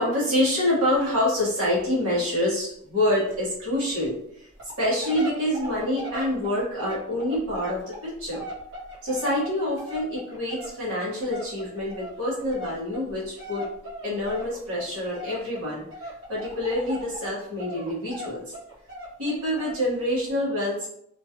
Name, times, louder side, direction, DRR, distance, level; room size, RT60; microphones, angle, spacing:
voice 1, 0.0-4.5 4.8-8.5 9.0-13.7 14.0-18.5 19.2-20.9, left 1 dB, 85° right, -8 dB, 1.5 m, -26 dB
sound 1, 1.0-1.1 1.4-1.5 1.8-1.9 2.2-2.3 2.7-2.8 3.3-3.4 4.0-4.1 4.5-17.3 17.6-19.9 20.3-20.4, equal, 60° right, 1.1 m, -39 dB
3.0 x 2.4 x 2.9 m, 0.73 s
head